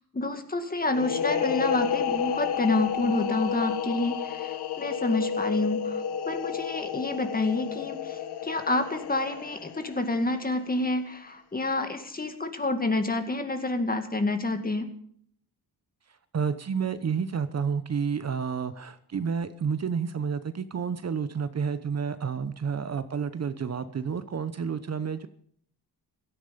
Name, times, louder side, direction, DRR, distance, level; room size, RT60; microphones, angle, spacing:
voice 1, 0.1-14.9, left 2 dB, 20° left, 7 dB, 2.2 m, -28 dB
sound 1, 0.9-10.4, left 7 dB, 75° left, 1.3 m, -31 dB
voice 2, 16.3-25.3, right 6 dB, 40° right, 12 dB, 0.9 m, -30 dB
16.5 x 13.5 x 5.3 m, 0.63 s
cardioid pair, 105°, 39 cm